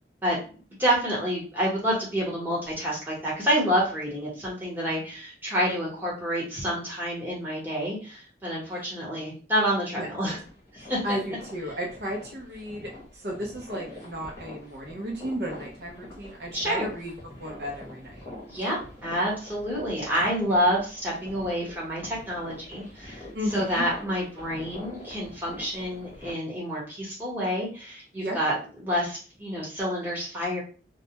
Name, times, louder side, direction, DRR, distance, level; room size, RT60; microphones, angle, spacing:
voice 1, 0.8-10.4 10.9-11.2 16.5-16.9 18.5-18.8 19.0-23.2 23.5-28.5 28.8-30.6, equal, 10° right, -6 dB, 0.9 m, -28 dB
sound 1, 10.2-26.3, left 1 dB, 20° left, 0.8 m, -45 dB
voice 2, 11.0-12.9 13.1-17.1 17.4-18.2 23.3-23.9 28.2-28.4, equal, 60° right, -1 dB, 0.5 m, -34 dB
2.2 x 2.1 x 2.8 m, 0.38 s
head